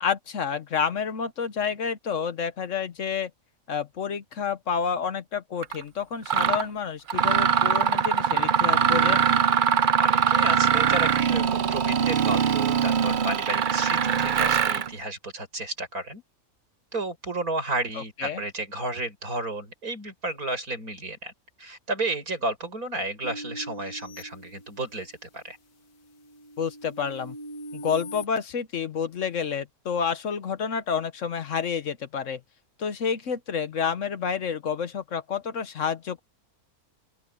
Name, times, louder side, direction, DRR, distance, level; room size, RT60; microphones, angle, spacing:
voice 1, 0.0-3.3 3.7-9.3 18.2-18.4 26.6-27.3 27.7-32.4 32.8-36.2, left 6 dB, 60° left, 1.3 m, -29 dB
Mechanisms, 5.6-5.8 6.3-6.6 7.1-14.9, right 8 dB, 55° right, 0.5 m, -22 dB
voice 2, 10.0-16.2 16.9-21.3 21.6-25.6, right 2 dB, 75° right, 7.2 m, -32 dB
sound 1, 23.2-25.2 25.7-28.3, equal, 85° left, 1.9 m, -42 dB
open air
omnidirectional pair, 1.5 m